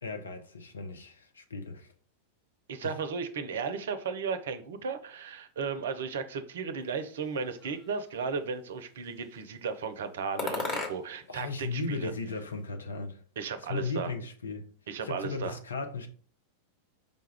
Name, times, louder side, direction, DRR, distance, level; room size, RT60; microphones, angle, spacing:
voice 1, 0.0-1.9 2.8-2.9 11.3-13.2 13.7-14.7 15.0-16.1, left 3 dB, 70° left, 0.6 m, -36 dB
voice 2, 2.7-12.1 13.4-14.1 14.9-15.5, right 5 dB, 60° right, 0.5 m, -35 dB
sound 1, 7.2-8.2 8.8-9.5 10.4-11.3 11.6-12.7, left 3 dB, 25° left, 1.2 m, -38 dB
5.0 x 2.3 x 3.3 m
figure-of-eight pair, 90°, 0 cm